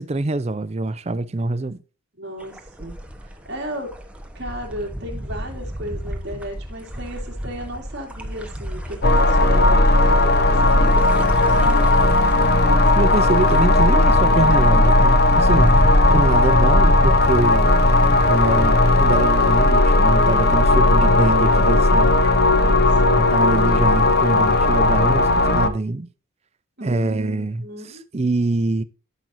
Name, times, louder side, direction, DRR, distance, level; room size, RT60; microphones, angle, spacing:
voice 1, 0.0-1.8 13.0-17.7 18.3-22.4 23.3-26.1 26.8-28.8, right 2 dB, 30° right, 0.5 m, -24 dB
voice 2, 2.1-3.9 4.3-12.2 16.3-16.9 22.4-23.9 26.8-28.0, equal, 50° right, 2.5 m, -35 dB
sound 1, 2.4-18.7, equal, 5° right, 0.9 m, -31 dB
sound 2, 9.0-25.7, left 2 dB, 50° left, 0.9 m, -16 dB
13.0 x 6.1 x 2.6 m
head